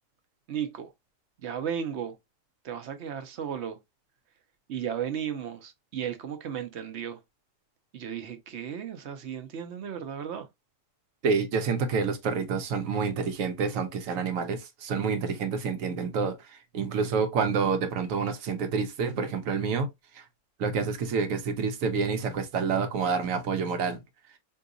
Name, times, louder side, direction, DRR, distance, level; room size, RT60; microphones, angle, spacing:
voice 1, 0.5-0.9 1.4-2.2 2.6-3.8 4.7-7.2 7.9-10.5, right 8 dB, 65° right, 0.8 m, -34 dB
voice 2, 11.2-16.3 16.7-19.9 20.6-24.0, right 5 dB, 85° right, 1.0 m, -28 dB
3.9 x 2.7 x 2.5 m
omnidirectional pair, 1.4 m